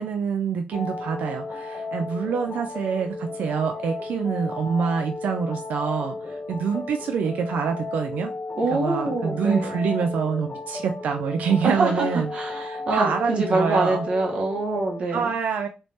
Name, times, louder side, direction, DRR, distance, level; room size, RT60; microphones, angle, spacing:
voice 1, 0.0-8.3 8.7-14.0 15.1-15.7, right 6 dB, 85° right, 0.3 m, -26 dB
sound 1, 0.7-15.0, left 3 dB, 25° left, 0.4 m, -34 dB
voice 2, 8.6-9.8 11.6-15.3, right 2 dB, 45° right, 1.0 m, -25 dB
3.2 x 3.1 x 2.7 m
wide cardioid pair, 155°, 3 cm